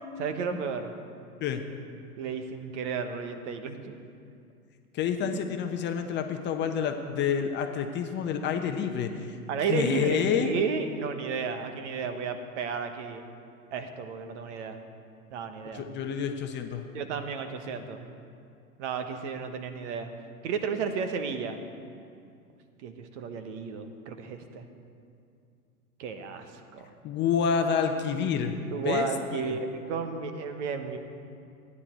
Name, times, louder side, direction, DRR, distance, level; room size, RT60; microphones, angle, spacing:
voice 1, 0.2-0.9 2.2-4.0 5.2-5.4 9.5-13.2 13.7-14.8 15.3-15.8 16.9-18.1 18.8-20.1 20.4-21.6 22.8-24.7 26.0-26.5 26.7-26.9 28.7-31.0, right 5 dB, 50° right, 7 dB, 1.2 m, -33 dB
voice 2, 4.9-9.4 9.7-10.5 15.7-16.9 27.0-28.6 28.8-29.6, left 7 dB, 25° left, 5 dB, 0.8 m, -28 dB
14.5 x 9.8 x 4.4 m, 2.4 s
hypercardioid pair, 105°, 45 cm